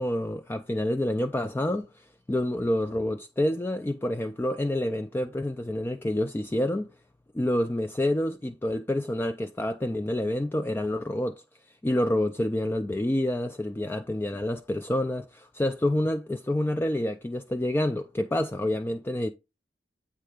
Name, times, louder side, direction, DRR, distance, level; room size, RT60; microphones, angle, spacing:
voice 1, 0.0-6.9 7.3-11.4 11.8-19.3, left 1 dB, 10° left, 0.3 m, -28 dB
8.4 x 3.3 x 4.9 m
head